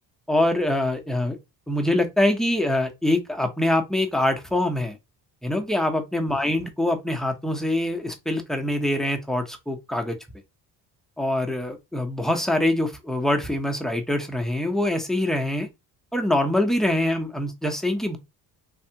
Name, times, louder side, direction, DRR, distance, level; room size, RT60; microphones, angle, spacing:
voice 1, 0.3-1.4 1.7-5.0 5.4-10.2 11.2-15.7 16.1-18.2, left 1 dB, ahead, 0.7 m, -24 dB
3.4 x 2.4 x 2.8 m
cardioid pair, 95°, 39 cm